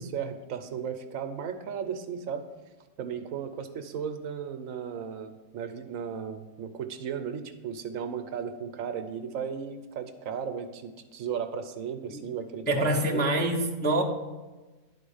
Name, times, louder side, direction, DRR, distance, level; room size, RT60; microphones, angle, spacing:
voice 1, 0.0-2.5 3.0-13.3, right 7 dB, 70° right, 8 dB, 1.0 m, -35 dB
voice 2, 12.7-14.0, right 1 dB, 15° left, -2 dB, 0.4 m, -25 dB
10.5 x 4.1 x 5.5 m, 1.2 s
omnidirectional pair, 1.5 m